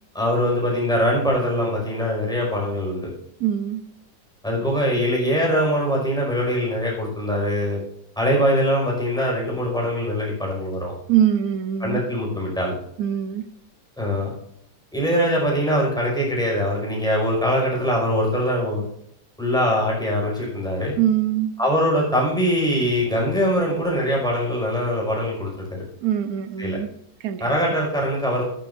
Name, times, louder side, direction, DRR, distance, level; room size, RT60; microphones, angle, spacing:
voice 1, 0.1-3.1 4.4-7.8 8.2-10.9 11.8-12.7 14.0-14.3 14.9-18.8 19.4-20.9 21.6-25.9 26.6-26.8 27.4-28.4, equal, ahead, 5.5 m, -22 dB
voice 2, 3.4-3.8 11.1-12.0 13.0-13.5 21.0-21.5 26.0-26.9 27.2-27.5, right 10 dB, 65° right, 1.1 m, -22 dB
14.0 x 12.5 x 2.6 m
omnidirectional pair, 2.0 m